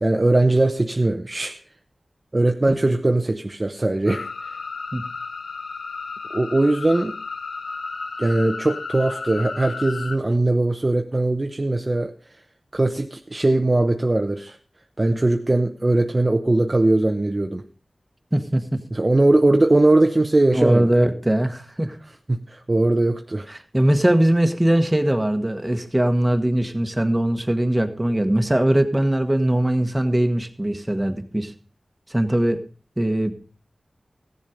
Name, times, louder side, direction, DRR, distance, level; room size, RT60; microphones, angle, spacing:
voice 1, 0.0-1.6 2.3-4.3 6.3-7.2 8.2-12.1 12.7-14.6 15.0-17.6 18.9-20.9 22.3-23.5, right 2 dB, 35° right, 5 dB, 0.7 m, -20 dB
sound 1, 4.1-10.2, left 4 dB, 90° left, 0.7 m, -33 dB
voice 2, 18.3-18.8 20.5-22.0 23.5-31.5 32.1-32.6 33.0-33.3, right 1 dB, 15° right, 7 dB, 1.4 m, -21 dB
15.0 x 7.3 x 5.1 m, 0.39 s
wide cardioid pair, 65°, 0 cm